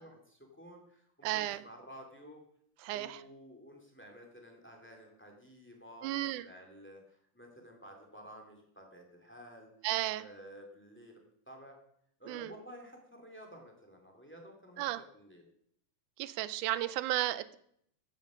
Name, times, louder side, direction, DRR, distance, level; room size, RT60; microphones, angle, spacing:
voice 1, 0.0-2.4 2.9-9.7 10.2-11.2 11.5-11.8 12.2-15.4, equal, 5° left, 2 dB, 2.2 m, -52 dB
voice 2, 1.2-1.6 2.8-3.2 6.0-6.5 9.8-10.2 12.3-12.5 14.8-15.0 16.2-17.6, right 15 dB, 85° right, 15 dB, 2.1 m, -33 dB
14.5 x 9.4 x 5.1 m, 0.68 s
omnidirectional pair, 3.5 m